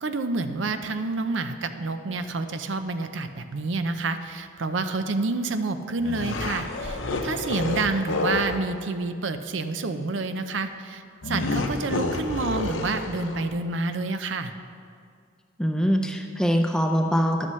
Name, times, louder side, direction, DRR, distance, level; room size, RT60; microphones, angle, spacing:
voice 1, 0.0-14.5, right 3 dB, 70° right, 9 dB, 0.6 m, -28 dB
sound 1, 6.0-8.6 11.2-13.5, left 2 dB, 85° left, 0.9 m, -29 dB
voice 2, 15.6-17.5, equal, 5° left, 3 dB, 0.6 m, -23 dB
13.0 x 11.0 x 3.2 m, 2.2 s
head